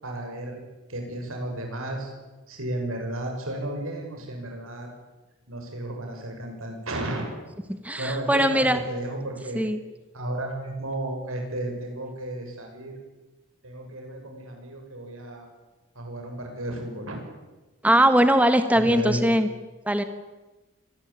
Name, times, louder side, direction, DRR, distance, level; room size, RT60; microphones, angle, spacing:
voice 1, 0.0-0.6 0.9-2.1 2.5-4.9 5.5-7.3 8.0-9.6 10.1-13.0 13.6-15.5 16.0-17.2 18.8-19.2, right 1 dB, 80° right, 2 dB, 7.3 m, -33 dB
voice 2, 7.7-8.8 9.5-9.8 17.8-19.5 19.8-20.0, right 1 dB, 5° right, 9 dB, 1.4 m, -20 dB
25.0 x 19.0 x 8.9 m, 1.1 s
head